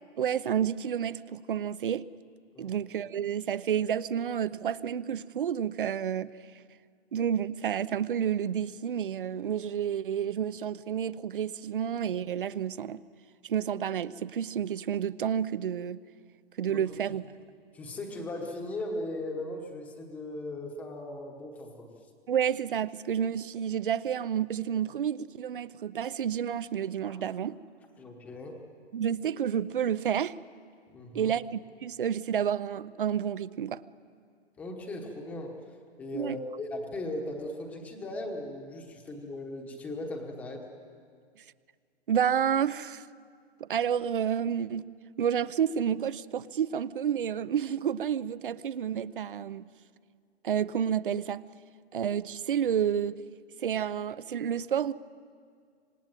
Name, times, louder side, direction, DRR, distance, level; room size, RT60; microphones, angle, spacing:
voice 1, 0.2-2.0 2.6-6.3 7.1-13.0 13.4-16.0 16.6-17.2 22.3-27.6 28.9-30.3 31.1-33.8 36.1-36.4 42.1-43.1 43.6-44.9 45.2-49.7 50.4-51.5 51.9-53.2 53.6-54.9, right 8 dB, 50° right, 0.7 m, -30 dB
voice 2, 17.7-21.9 27.1-27.2 28.0-28.6 30.9-31.4 34.6-35.6 36.0-40.6, left 1 dB, 5° left, 1.0 m, -38 dB
26.5 x 19.0 x 9.0 m
hypercardioid pair, 175°, 33 cm